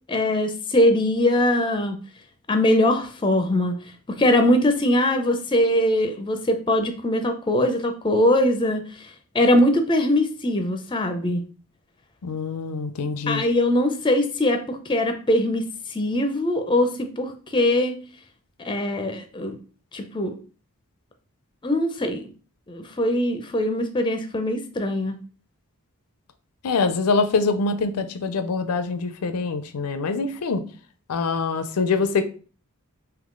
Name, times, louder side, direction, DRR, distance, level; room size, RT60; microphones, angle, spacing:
voice 1, 0.1-2.0 2.5-3.7 4.1-11.4 13.3-15.6 15.9-17.9 18.6-19.6 19.9-20.4 21.6-22.3 22.7-25.2, left 1 dB, 20° left, 7 dB, 0.4 m, -22 dB
voice 2, 12.2-13.4 26.6-30.6 31.1-32.3, left 4 dB, 90° left, 10 dB, 0.5 m, -24 dB
3.7 x 2.8 x 3.6 m, 0.38 s
head